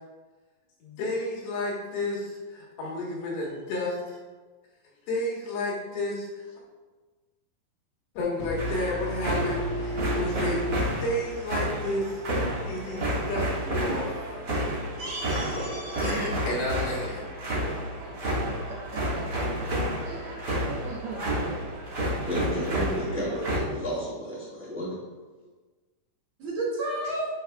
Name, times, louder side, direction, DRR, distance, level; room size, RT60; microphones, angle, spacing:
voice 1, 0.8-4.2 5.1-6.5 8.1-12.2 12.7-14.1 14.8-15.1 15.9-17.3, left 1 dB, 85° left, -4 dB, 3.4 m, -32 dB
sound 1, 8.4-12.3, equal, 65° left, 1.6 m, -34 dB
sound 2, 8.6-23.6, right 1 dB, 35° right, 1.8 m, -30 dB
voice 2, 15.0-16.4 26.4-27.3, right 2 dB, 60° right, -5 dB, 1.9 m, -32 dB
voice 3, 18.5-21.8, right 3 dB, 85° right, -5 dB, 1.2 m, -41 dB
voice 4, 22.2-25.0, equal, 10° right, -9 dB, 0.7 m, -32 dB
10.5 x 5.1 x 2.3 m, 1.3 s
omnidirectional pair, 4.2 m